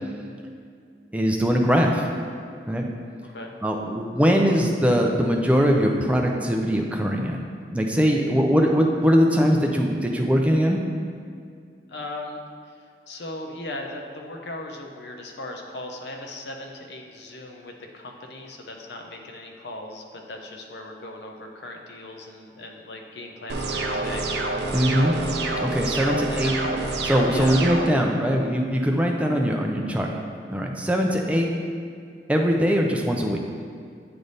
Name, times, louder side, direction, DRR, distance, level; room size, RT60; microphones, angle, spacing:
voice 1, 1.1-2.1 2.7-2.9 3.6-7.4 7.7-10.8 24.7-25.1 25.6-26.5 27.0-30.1 30.5-31.5 32.3-33.4, equal, 10° right, 1 dB, 0.5 m, -21 dB
voice 2, 11.9-12.4 12.7-12.8 13.1-24.3 26.1-26.7 27.2-27.6, left 2 dB, 75° left, 2 dB, 0.7 m, -38 dB
sound 1, 23.5-27.9, right 2 dB, 70° right, 0.6 m, -27 dB
8.8 x 3.4 x 4.0 m, 2.2 s
head